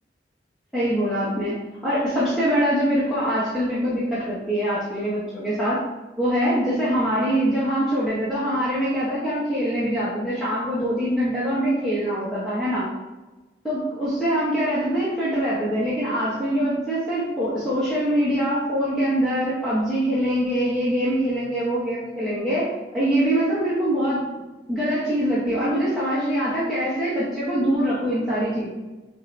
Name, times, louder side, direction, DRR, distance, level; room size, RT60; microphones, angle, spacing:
voice 1, 0.7-5.8 6.2-12.9 13.6-24.3 24.7-28.7, equal, ahead, -11 dB, 1.0 m, -23 dB
5.6 x 2.7 x 3.3 m, 1.1 s
head